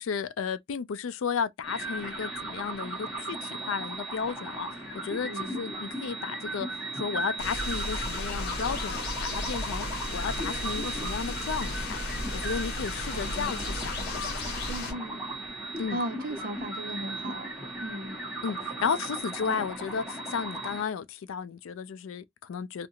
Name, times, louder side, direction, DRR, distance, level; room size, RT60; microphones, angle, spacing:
voice 1, 0.0-4.7 4.9-9.9 10.1-12.0 12.3-14.4 15.8-16.0 18.4-22.9, left 6 dB, 65° left, 0.4 m, -33 dB
sound 1, 1.6-20.8, right 2 dB, ahead, 1.4 m, -37 dB
voice 2, 5.2-5.6 13.1-13.7 14.7-15.2 15.9-17.5 17.8-18.2 19.4-19.7, right 1 dB, 45° right, 0.6 m, -37 dB
sound 2, 7.4-14.9, left 2 dB, 50° left, 1.1 m, -34 dB
2.7 x 2.5 x 2.7 m
head